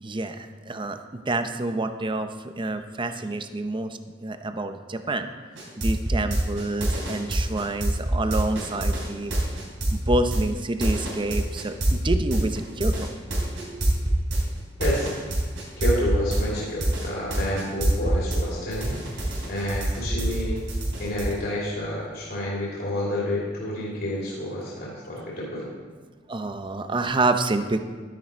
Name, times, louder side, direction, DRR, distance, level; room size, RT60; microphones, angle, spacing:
voice 1, 0.0-5.3 5.8-9.4 9.9-13.1 13.6-13.9 26.3-27.8, right 2 dB, 25° right, 8 dB, 0.7 m, -28 dB
sound 1, 5.5-18.4 18.7-21.3, right 1 dB, 75° right, 3.6 m, -25 dB
voice 2, 14.8-15.1 15.8-20.6 21.0-25.7, left 1 dB, 55° left, -6 dB, 2.9 m, -29 dB
12.0 x 10.5 x 4.4 m, 1.4 s
head